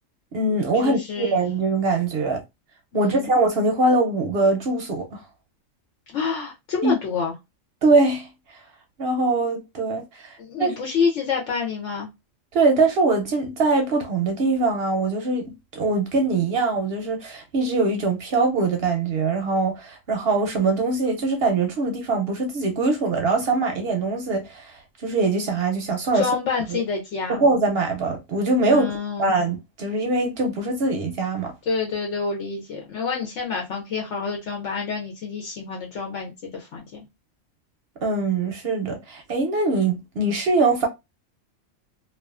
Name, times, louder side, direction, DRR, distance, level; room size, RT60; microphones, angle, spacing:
voice 1, 0.3-2.4 2.9-5.2 6.8-6.9 7.8-8.6 9.0-10.8 12.5-26.3 26.7-26.8 27.3-31.5 38.0-40.9, right 3 dB, 60° right, 0.7 m, -22 dB
voice 2, 0.8-1.4 2.9-3.3 6.1-7.3 10.4-12.1 26.1-27.4 28.7-29.3 31.7-36.9, left 5 dB, 70° left, 0.9 m, -28 dB
2.4 x 2.3 x 2.3 m
omnidirectional pair, 1.3 m